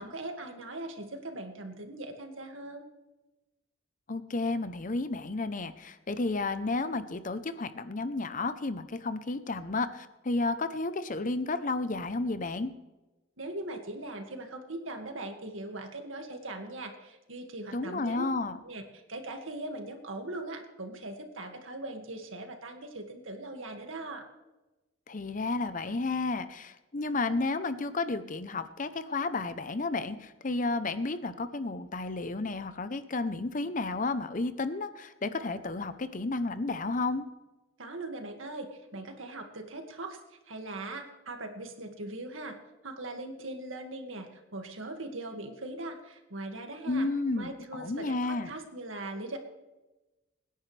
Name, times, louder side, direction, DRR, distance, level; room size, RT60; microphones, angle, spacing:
voice 1, 0.0-2.8 13.4-18.3 18.6-24.2 37.8-42.6 42.8-47.1 47.4-49.4, right 2 dB, 75° right, 4 dB, 2.0 m, -40 dB
voice 2, 4.1-12.7 17.7-18.6 25.1-37.2 46.9-48.5, left 3 dB, 40° left, 12 dB, 0.7 m, -32 dB
24.0 x 10.0 x 3.4 m, 1.1 s
head